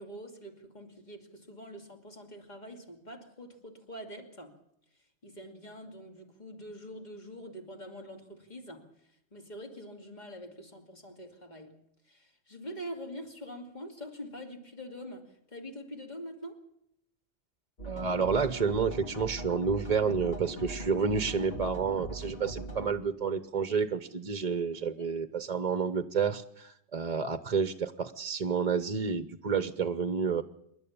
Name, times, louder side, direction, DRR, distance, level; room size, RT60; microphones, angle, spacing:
voice 1, 0.0-4.6 5.2-11.8 12.0-16.6 24.7-25.1, equal, 40° left, 2.8 m, -45 dB
sound 1, 17.8-22.9, right 1 dB, 60° left, 3.1 m, -40 dB
voice 2, 17.9-30.4, right 5 dB, 40° right, 0.9 m, -30 dB
27.0 x 11.5 x 8.7 m
omnidirectional pair, 1.1 m